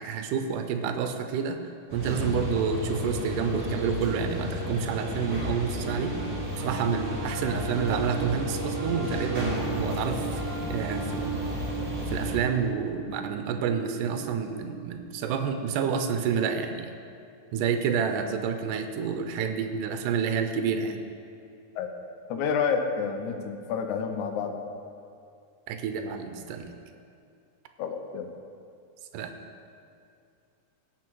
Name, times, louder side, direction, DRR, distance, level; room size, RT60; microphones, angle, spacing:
voice 1, 0.0-1.6 1.9-6.2 6.6-10.4 10.7-11.8 12.1-16.9 17.5-21.0 25.7-26.7 29.1-29.3, right 6 dB, 80° right, 7 dB, 2.2 m, -29 dB
sound 1, 1.9-12.4, left 1 dB, 20° right, 2.7 m, -33 dB
Piano, 5.0-16.5, right 6 dB, 55° right, 2.9 m, -38 dB
voice 2, 22.3-24.7 27.8-28.3, left 6 dB, 75° left, 5 dB, 2.1 m, -29 dB
17.5 x 5.8 x 4.6 m, 2.4 s
omnidirectional pair, 3.8 m